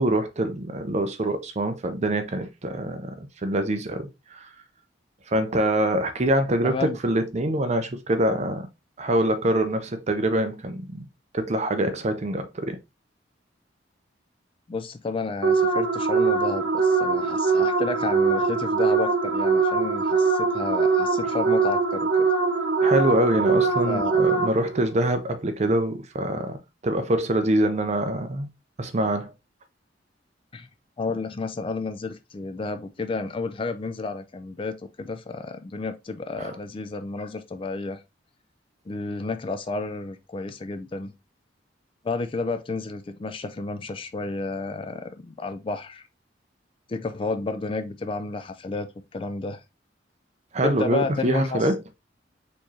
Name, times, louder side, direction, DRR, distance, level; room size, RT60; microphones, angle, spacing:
voice 1, 0.0-4.5 5.3-8.7 9.0-11.0 11.3-12.8 22.8-28.5 28.8-29.3 36.4-36.6 50.5-51.8, right 1 dB, 40° right, 0.6 m, -25 dB
voice 2, 6.6-7.0 14.7-22.1 23.9-24.2 30.5-30.7 31.0-38.0 38.9-41.1 42.0-46.0 46.9-49.6 50.6-51.7, left 3 dB, 30° left, 0.3 m, -31 dB
sound 1, 15.4-24.8, right 4 dB, 80° right, 0.9 m, -22 dB
4.4 x 3.1 x 2.7 m
head